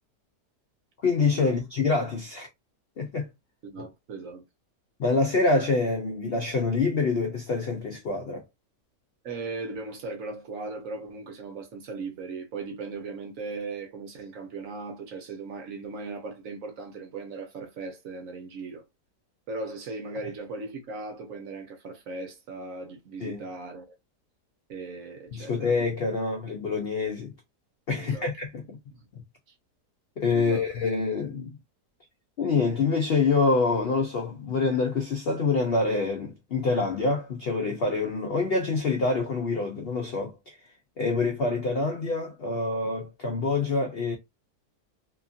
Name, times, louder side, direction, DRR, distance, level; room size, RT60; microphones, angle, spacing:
voice 1, 1.0-2.5 3.0-3.3 5.0-8.4 23.2-23.4 25.3-27.3 27.9-28.8 29.1-29.2 30.2-31.5 32.4-40.6 41.0-44.2, left 3 dB, 90° left, 0.5 m, -26 dB
voice 2, 3.6-4.4 9.2-18.8 19.5-23.9 24.7-25.7 27.9-28.3 28.9-29.1 30.3-30.6, right 3 dB, 60° right, 1.1 m, -38 dB
2.9 x 2.5 x 2.4 m
omnidirectional pair, 1.8 m